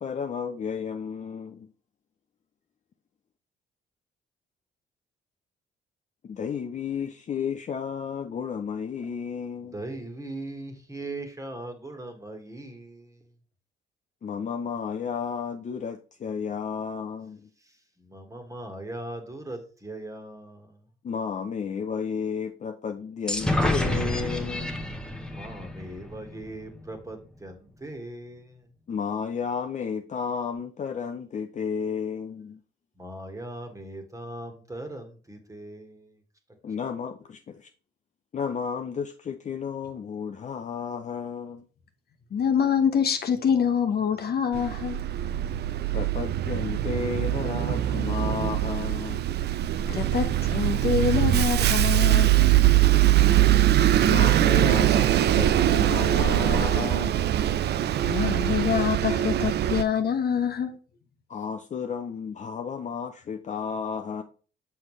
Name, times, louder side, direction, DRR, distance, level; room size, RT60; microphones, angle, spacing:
voice 1, 0.0-1.7 6.2-9.8 14.2-17.5 21.0-24.8 28.9-32.6 36.6-37.7 38.3-41.7 45.9-49.2 54.1-57.2 61.3-64.2, left 6 dB, 40° left, 0.5 m, -32 dB
voice 2, 9.6-13.3 18.0-20.8 25.3-28.7 33.0-36.2, right 2 dB, 15° right, 1.6 m, -39 dB
sound 1, 23.3-27.0, left 1 dB, 5° left, 0.9 m, -29 dB
voice 3, 42.3-45.0 49.9-52.5 58.1-60.8, left 7 dB, 55° left, 0.9 m, -25 dB
Bus, 44.5-59.8, right 12 dB, 55° right, 0.4 m, -22 dB
6.3 x 5.6 x 3.2 m
cardioid pair, 90°, 20 cm